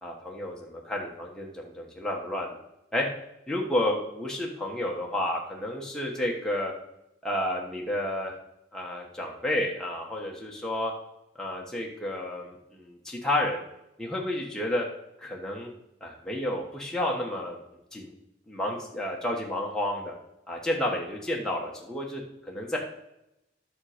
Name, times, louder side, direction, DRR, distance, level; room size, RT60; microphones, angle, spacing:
voice 1, 0.0-2.6 2.9-3.1 3.5-6.7 7.2-8.3 8.7-10.9 11.3-13.6 14.0-14.9 15.2-15.7 16.0-17.6 17.9-18.1 18.5-20.1 20.5-22.8, left 1 dB, 5° left, -3 dB, 1.4 m, -31 dB
10.5 x 6.4 x 5.1 m, 0.86 s
head